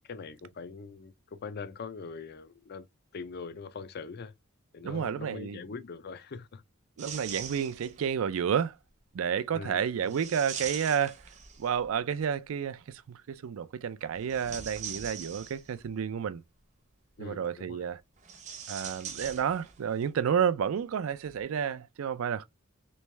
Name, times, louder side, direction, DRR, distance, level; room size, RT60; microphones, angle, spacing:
voice 1, 0.0-2.9 3.1-4.3 4.7-6.6 9.5-10.2 17.2-17.8, left 5 dB, 50° left, 0.4 m, -42 dB
voice 2, 4.8-5.6 7.0-8.7 9.1-11.2 11.6-16.4 17.2-18.0 18.7-22.4, right 7 dB, 70° right, 0.4 m, -30 dB
sound 1, 7.0-8.1 10.1-11.9 14.1-15.9 18.2-19.9 20.2-20.3 21.3-21.4, right 7 dB, 35° right, 0.7 m, -42 dB
3.4 x 3.2 x 3.2 m
head